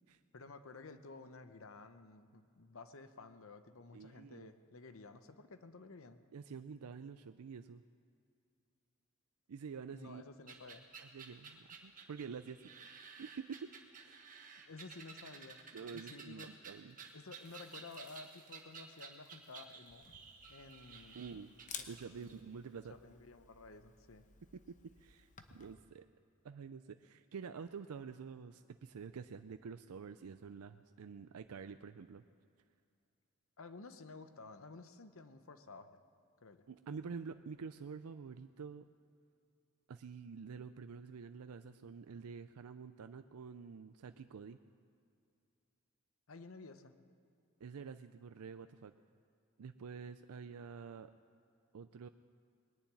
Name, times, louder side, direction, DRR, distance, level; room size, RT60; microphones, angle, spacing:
voice 1, 0.3-6.2 9.9-10.9 14.7-16.5 17.1-20.1 20.5-21.2 22.1-22.4 22.9-24.2 33.6-36.0 36.4-36.6 46.3-46.9, left 3 dB, 60° left, 9 dB, 0.9 m, -53 dB
voice 2, 3.9-4.5 6.3-7.8 9.5-10.2 11.0-12.6 13.2-13.7 14.0-14.2 15.7-17.0 21.1-21.5 21.9-22.9 24.5-25.3 25.5-26.1 26.4-32.2 36.7-38.9 39.9-44.6 47.6-48.9 49.6-51.1 51.7-52.1, right 5 dB, 80° right, 10 dB, 0.4 m, -48 dB
sound 1, 10.5-22.4, right 5 dB, 40° right, 1.4 m, -53 dB
Camera, 19.9-25.7, left 7 dB, 35° left, 0.8 m, -54 dB
20.5 x 7.1 x 9.5 m, 2.4 s
head